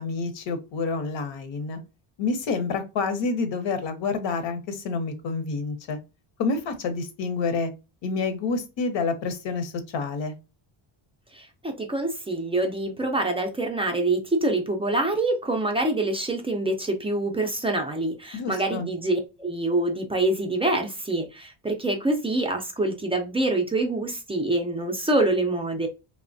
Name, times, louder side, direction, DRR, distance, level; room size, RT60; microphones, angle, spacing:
voice 1, 0.0-1.8 2.2-6.0 6.4-7.7 8.0-10.3 18.3-18.9, left 4 dB, 65° left, 0.8 m, -28 dB
voice 2, 11.3-25.9, right 2 dB, 15° right, 0.3 m, -26 dB
3.1 x 2.1 x 2.5 m
cardioid pair, 125°, 48 cm